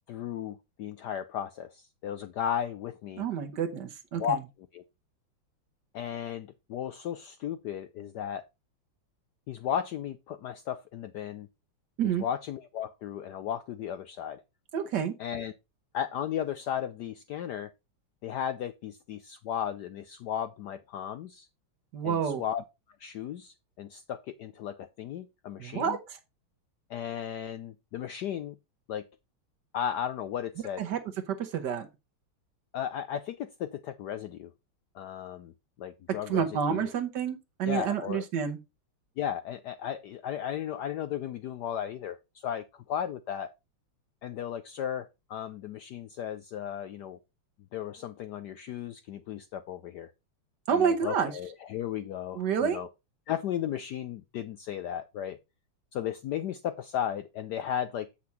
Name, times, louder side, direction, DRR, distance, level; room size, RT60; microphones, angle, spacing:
voice 1, 0.1-3.3 4.2-4.4 4.7-4.8 5.9-8.4 9.5-11.5 12.2-14.4 15.2-15.5 15.9-17.7 18.2-21.5 22.0-22.6 23.0-26.0 26.9-28.5 28.9-29.0 29.7-30.8 32.7-34.5 34.9-35.5 35.8-36.9 37.6-38.2 39.2-43.5 44.2-47.2 47.7-50.1 50.7-52.9 53.3-55.4 55.9-58.1, left 9 dB, 75° left, 0.9 m, -35 dB
voice 2, 3.2-4.4 12.0-12.2 14.7-15.1 21.9-22.4 25.6-26.2 30.8-31.0 31.3-31.9 36.3-38.6 50.7-51.3 52.3-52.8, right 7 dB, 60° right, 1.4 m, -29 dB
7.8 x 5.9 x 4.1 m
omnidirectional pair, 2.3 m